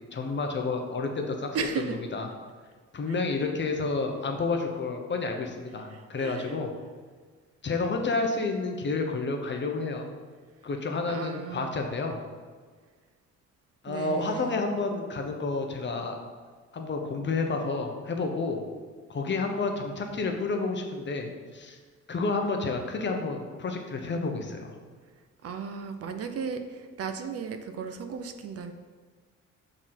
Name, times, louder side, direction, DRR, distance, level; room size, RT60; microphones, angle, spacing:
voice 1, 0.1-1.6 2.1-2.3 2.9-6.7 7.6-10.1 10.6-12.2 13.8-16.2 16.7-18.6 19.1-21.8 22.1-24.7, left 3 dB, 40° left, 3 dB, 0.8 m, -30 dB
voice 2, 1.5-2.0 3.1-3.2 5.9-6.6 11.1-11.8 13.9-14.6 25.4-28.7, right 5 dB, 50° right, 7 dB, 0.6 m, -35 dB
5.9 x 3.8 x 4.3 m, 1.5 s
cardioid pair, 90°, 30 cm